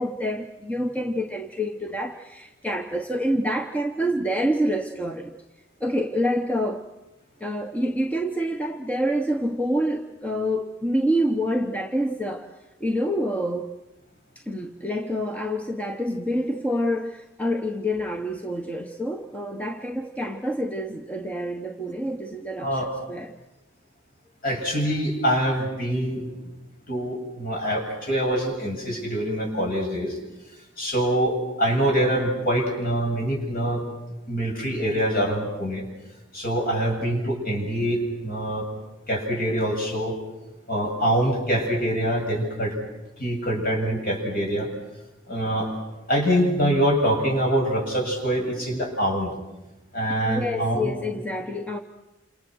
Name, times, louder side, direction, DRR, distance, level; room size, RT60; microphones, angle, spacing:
voice 1, 0.0-5.4 5.8-6.9 7.4-12.5 12.8-13.7 14.4-22.8 23.1-23.4 50.3-51.8, equal, 10° left, 1.1 m, -27 dB
voice 2, 24.4-26.3 26.9-30.2 30.8-33.8 34.3-35.8 36.3-38.7 39.1-40.1 40.7-42.8 43.2-44.7 45.3-45.8 46.1-49.3 49.9-50.9, equal, 50° left, 7.9 m, -24 dB
28.5 x 27.5 x 6.4 m
head